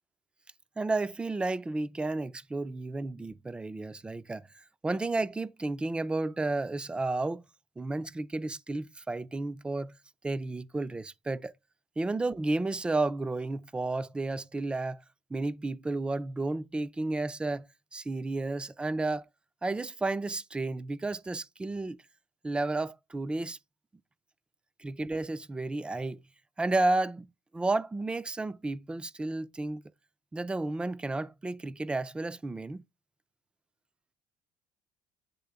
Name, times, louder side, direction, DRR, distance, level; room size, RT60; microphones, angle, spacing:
voice 1, 0.8-4.5 4.8-7.4 7.8-9.9 10.2-11.5 12.0-15.0 15.3-17.7 17.9-19.2 19.6-22.0 22.4-23.6 24.8-26.2 26.6-29.8 30.3-32.8, right 2 dB, 10° right, 0.3 m, -32 dB
8.2 x 3.4 x 3.4 m
cardioid pair, 130°, 9 cm